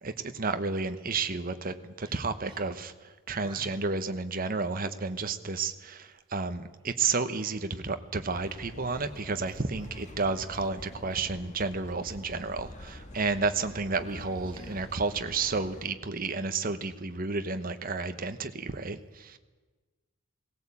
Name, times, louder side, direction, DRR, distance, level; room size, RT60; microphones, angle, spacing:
voice 1, 0.0-2.9 3.3-19.4, right 4 dB, 40° right, 9 dB, 1.1 m, -31 dB
voice 2, 2.1-2.6 3.3-3.8 14.5-14.9, right 2 dB, 25° right, -1 dB, 4.2 m, -50 dB
sound 1, 8.3-15.9, left 1 dB, 35° left, 2.3 m, -46 dB
17.5 x 17.0 x 8.5 m, 1.3 s
head